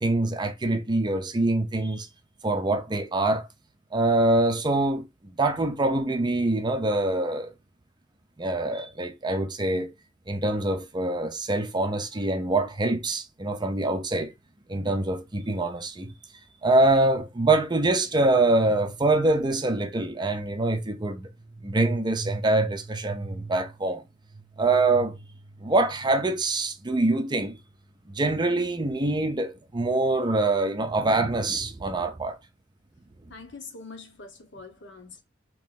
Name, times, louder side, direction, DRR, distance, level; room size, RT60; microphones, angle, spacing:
voice 1, 0.0-2.1 2.4-3.5 3.9-7.5 8.4-9.9 10.3-14.3 14.7-16.1 16.6-21.3 21.6-24.0 24.6-25.2 25.6-27.6 28.1-32.4, right 2 dB, 25° right, 0.5 m, -24 dB
voice 2, 33.3-35.2, left 4 dB, 65° left, 0.9 m, -44 dB
3.0 x 2.6 x 3.6 m
head